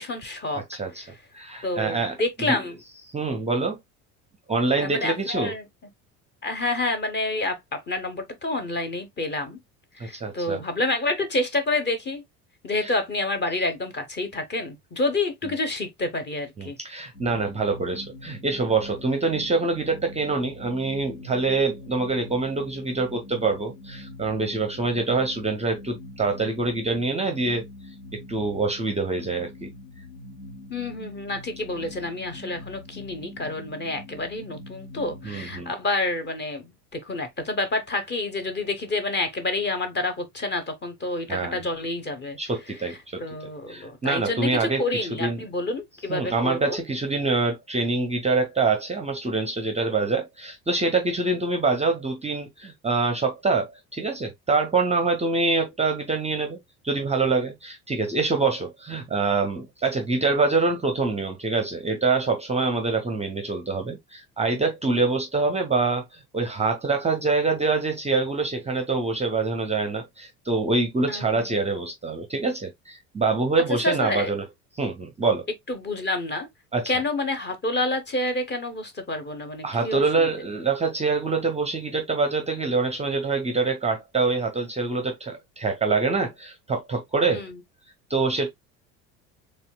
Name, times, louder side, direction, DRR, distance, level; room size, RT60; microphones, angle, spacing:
voice 1, 0.0-0.6 1.0-1.2 1.6-2.8 4.8-5.6 6.4-9.6 9.9-12.2 12.6-16.8 30.7-42.4 42.9-46.8 71.1-71.4 73.7-74.3 75.7-76.5 76.9-80.3 87.3-87.6, left 2 dB, 20° left, 0.9 m, -28 dB
voice 2, 0.7-1.0 1.3-2.1 2.5-2.6 3.1-3.8 4.5-5.5 10.0-10.6 12.8-12.9 16.6-27.6 28.1-29.7 35.2-35.7 41.3-41.6 42.4-43.2 43.7-44.8 45.2-45.4 46.1-56.6 56.8-74.4 74.8-75.4 76.7-76.9 79.6-87.4 88.1-88.5, right 3 dB, 15° right, 0.6 m, -25 dB
sound 1, 17.1-35.6, left 2 dB, 85° left, 0.9 m, -43 dB
4.2 x 3.2 x 2.2 m
figure-of-eight pair, 65°, 47 cm